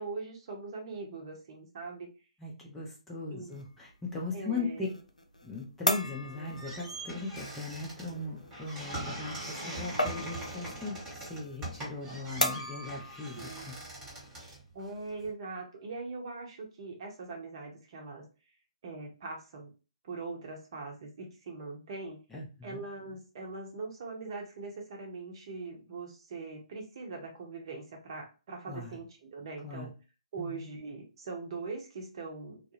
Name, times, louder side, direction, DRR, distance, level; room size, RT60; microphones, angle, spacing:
voice 1, 0.0-2.1 3.3-3.5 4.3-4.9 13.3-13.6 14.7-18.2 18.8-19.7 20.0-22.2 22.6-29.9 30.3-32.6, right 3 dB, 45° right, 1 dB, 0.7 m, -41 dB
voice 2, 2.4-4.9 5.4-13.7 22.3-22.8 28.7-29.0 29.6-29.9 30.4-30.7, left 3 dB, 5° left, -4 dB, 0.5 m, -39 dB
sound 1, 3.5-14.3, left 1 dB, 85° left, 0.5 m, -38 dB
sound 2, 6.2-15.3, right 1 dB, 15° right, 1.2 m, -42 dB
2.3 x 2.0 x 2.9 m, 0.32 s
figure-of-eight pair, 130°, 4 cm